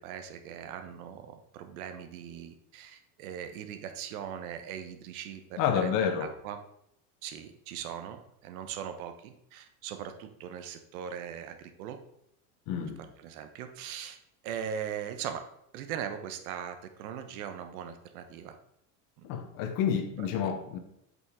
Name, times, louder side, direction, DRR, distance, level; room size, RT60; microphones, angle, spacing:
voice 1, 0.0-5.9 6.2-6.6 7.2-12.0 13.2-14.2 14.4-15.4 15.7-18.6 19.2-19.3, right 8 dB, 85° right, 8 dB, 1.1 m, -40 dB
voice 2, 5.6-6.3 12.7-13.0 19.2-20.8, left 7 dB, 50° left, 7 dB, 1.1 m, -29 dB
8.0 x 5.3 x 3.7 m, 0.77 s
cardioid pair, 145°, 42 cm